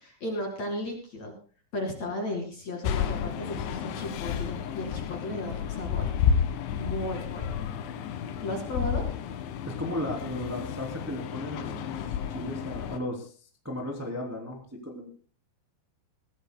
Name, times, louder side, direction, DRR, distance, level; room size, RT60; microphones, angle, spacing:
voice 1, 0.0-1.3 1.7-6.1 6.7-7.7 8.4-9.1, left 1 dB, 45° left, 1 dB, 2.8 m, -35 dB
sound 1, 2.8-13.0, left 7 dB, 75° left, 3.4 m, -31 dB
voice 2, 9.6-15.1, left 1 dB, 5° right, 0 dB, 1.6 m, -36 dB
21.0 x 16.0 x 2.2 m, 0.39 s
omnidirectional pair, 5.5 m